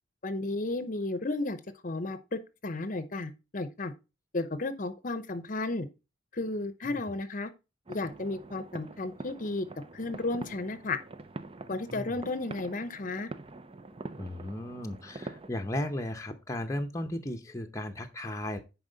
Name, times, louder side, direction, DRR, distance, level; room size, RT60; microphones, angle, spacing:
voice 1, 0.2-1.6 1.8-3.9 4.3-5.9 6.3-7.5 7.9-9.7 9.9-11.0 11.7-13.3, left 2 dB, 45° left, 0.7 m, -33 dB
sound 1, 7.9-15.5, right 2 dB, 30° right, 0.6 m, -45 dB
voice 2, 11.9-12.2 14.2-18.6, left 1 dB, 15° left, 0.8 m, -35 dB
10.0 x 4.8 x 3.9 m
head